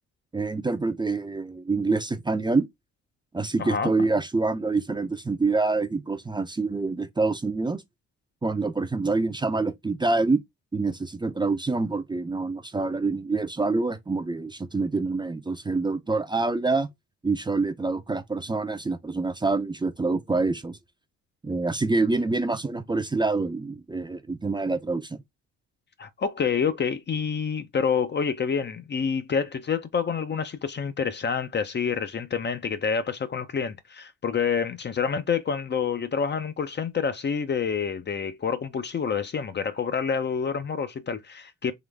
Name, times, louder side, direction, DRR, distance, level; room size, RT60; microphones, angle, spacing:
voice 1, 0.3-2.7 3.3-7.8 8.4-10.4 10.7-16.9 17.2-20.8 21.4-25.2, right 3 dB, 15° right, 0.6 m, -26 dB
voice 2, 3.6-4.1 26.0-41.7, left 6 dB, 35° left, 0.6 m, -28 dB
3.8 x 3.1 x 3.4 m
cardioid pair, 90°, 30 cm